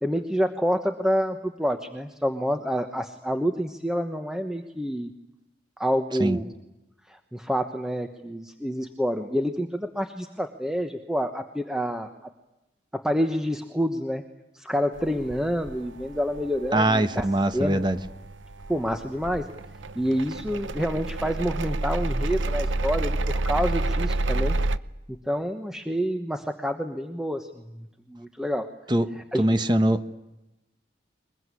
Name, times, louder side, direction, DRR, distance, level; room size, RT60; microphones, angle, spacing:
voice 1, 0.0-5.1 5.8-6.5 7.1-12.3 12.9-14.2 14.5-17.3 17.5-17.8 18.7-19.5 20.0-24.6 25.3-27.5 27.7-28.7 29.2-29.5, equal, 5° right, 6 dB, 1.1 m, -28 dB
sound 1, 15.0-24.8, right 2 dB, 90° right, 0.8 m, -30 dB
voice 2, 16.7-18.0 28.9-30.0, right 1 dB, 25° right, 10 dB, 1.1 m, -22 dB
22.5 x 22.0 x 9.7 m, 0.95 s
head